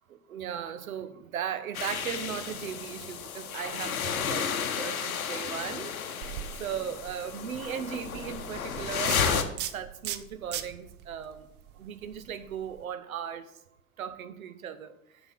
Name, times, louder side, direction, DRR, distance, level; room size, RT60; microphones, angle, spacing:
voice 1, 0.3-5.9 6.2-6.3 6.6-9.5 9.7-11.5 11.8-13.5 14.0-14.9, right 8 dB, 70° right, 11 dB, 0.8 m, -37 dB
sound 1, 1.7-9.4, left 7 dB, 75° left, 0.8 m, -32 dB
sound 2, 6.2-12.8, right 11 dB, 25° right, 0.4 m, -41 dB
6.8 x 6.0 x 5.7 m, 0.83 s
figure-of-eight pair, 75°, 43 cm